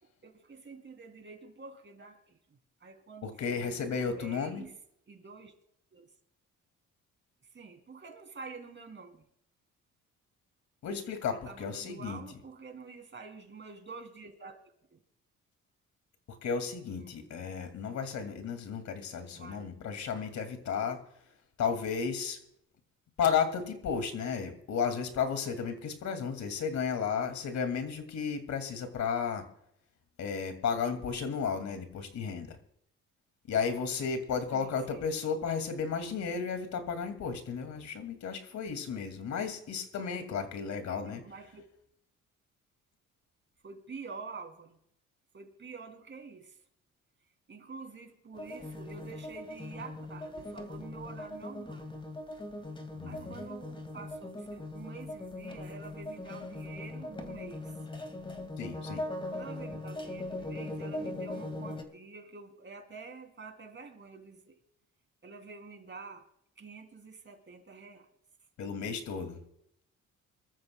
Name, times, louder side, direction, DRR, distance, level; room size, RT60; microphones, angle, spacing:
voice 1, 0.0-2.4 2.8-4.7 5.1-5.5 5.9-6.1 7.5-9.2 11.3-14.6 14.9-15.0 17.0-17.3 19.3-19.7 34.5-35.1 40.9-41.7 43.6-44.8 45.3-46.6 47.5-51.9 53.1-57.7 59.3-64.6 65.2-66.2 66.6-68.1, right 4 dB, 40° right, 4 dB, 3.1 m, -48 dB
voice 2, 3.2-4.6 10.8-12.2 16.3-21.0 21.6-22.4 23.2-29.4 30.2-32.6 33.5-41.2 53.0-53.4 58.6-59.0 68.6-69.4, left 6 dB, 65° left, 7 dB, 2.4 m, -33 dB
sound 1, 48.3-61.8, left 1 dB, 15° left, 2.2 m, -40 dB
26.0 x 14.0 x 2.3 m, 0.74 s
cardioid pair, 90°, 30 cm